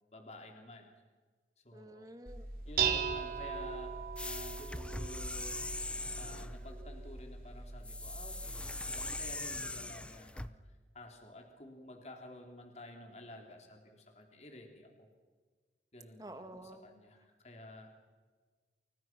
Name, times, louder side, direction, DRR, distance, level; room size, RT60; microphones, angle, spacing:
voice 1, 0.1-0.9 1.6-2.1 2.6-5.6 6.2-10.5 10.9-15.1 15.9-17.9, left 1 dB, 40° left, 3 dB, 3.4 m, -51 dB
voice 2, 1.7-2.4 16.2-16.8, right 1 dB, 20° right, 8 dB, 1.9 m, -49 dB
Dishes pots and pans, 2.3-9.3, right 6 dB, 55° right, 3.4 m, -39 dB
sound 1, 4.2-6.6 7.8-10.5, left 2 dB, 5° left, 0.7 m, -41 dB
29.5 x 29.0 x 6.1 m, 1.4 s
head